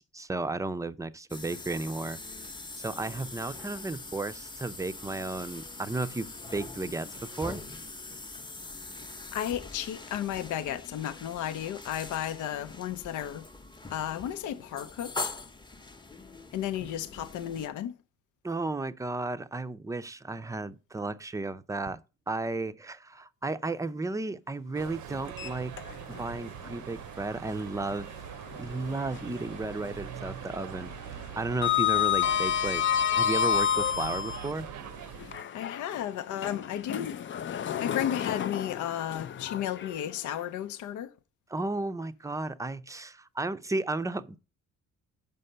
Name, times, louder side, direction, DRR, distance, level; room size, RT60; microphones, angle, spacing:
voice 1, 0.0-2.2 2.8-7.6 18.4-22.0 22.3-25.7 26.2-28.1 28.5-32.8 33.2-34.7 41.5-44.4, right 2 dB, 10° right, 0.5 m, -34 dB
sound 1, 1.3-17.7, left 3 dB, 15° left, 0.8 m, -42 dB
voice 2, 9.3-13.5 13.9-15.3 16.5-18.0 35.5-41.1, left 11 dB, 80° left, 0.6 m, -34 dB
sound 2, 24.7-35.4, right 9 dB, 75° right, 0.7 m, -42 dB
Sliding door, 25.3-26.3 26.6-26.8 28.5-29.5 29.8-30.2 30.4-34.5 35.2-40.4, left 9 dB, 40° left, 0.5 m, -30 dB
5.5 x 5.3 x 6.6 m
cardioid pair, 90°, 30 cm